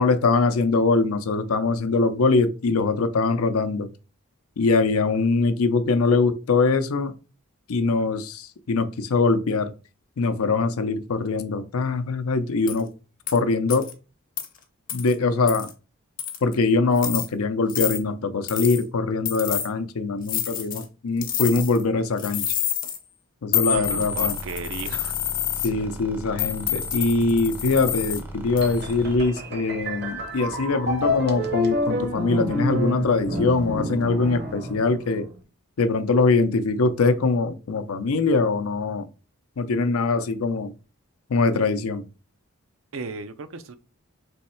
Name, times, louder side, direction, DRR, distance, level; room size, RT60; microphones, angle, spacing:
voice 1, 0.0-3.9 4.6-7.1 7.7-9.7 10.2-12.9 13.3-13.9 14.9-15.7 16.4-22.5 23.4-24.3 25.6-35.3 35.8-39.1 39.6-40.7 41.3-42.0, left 3 dB, 85° left, 0.5 m, -22 dB
sound 1, 12.7-12.8 13.3-13.4 13.7-13.9 14.4-14.5 14.9-15.1 15.5-15.7 16.2-16.5 17.0-17.3 17.7-18.0 18.5-18.8 19.3-19.7 20.3-20.8 21.2-21.8 22.2-23.0 23.5-25.7 26.4-28.2 28.6-28.9, left 10 dB, 40° left, 0.7 m, -28 dB
voice 2, 23.6-25.1 42.9-43.8, right 4 dB, 70° right, 0.5 m, -34 dB
sound 2, 23.7-29.3, right 1 dB, 10° right, 0.5 m, -38 dB
sound 3, 28.6-35.3, left 1 dB, 50° right, 0.8 m, -28 dB
3.5 x 3.1 x 4.3 m
head